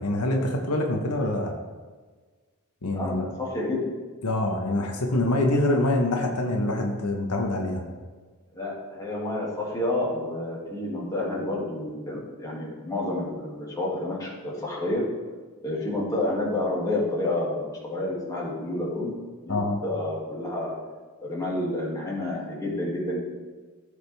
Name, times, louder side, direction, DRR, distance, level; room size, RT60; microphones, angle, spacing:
voice 1, 0.0-1.5 2.8-3.3 4.2-7.8 19.5-19.8, left 1 dB, 85° left, 2 dB, 1.1 m, -25 dB
voice 2, 2.9-3.9 4.7-4.8 8.5-15.0 15.6-19.2 19.4-19.6 19.8-20.7 21.2-23.2, left 1 dB, 15° left, -5 dB, 2.3 m, -29 dB
14.5 x 5.1 x 3.4 m, 1.4 s
head